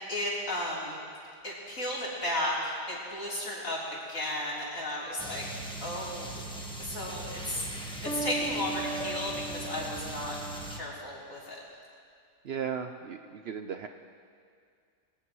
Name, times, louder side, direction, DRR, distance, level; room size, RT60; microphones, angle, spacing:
voice 1, 0.1-1.0 1.4-5.4 5.8-6.4 6.8-7.6 8.0-10.4 10.7-11.6, left 1 dB, 50° left, -6 dB, 4.1 m, -34 dB
sound 1, 5.2-10.8, right 2 dB, 5° left, 1.2 m, -37 dB
voice 2, 12.4-13.9, right 7 dB, 90° right, 6 dB, 0.5 m, -36 dB
23.5 x 18.0 x 3.1 m, 2.2 s
omnidirectional pair, 1.8 m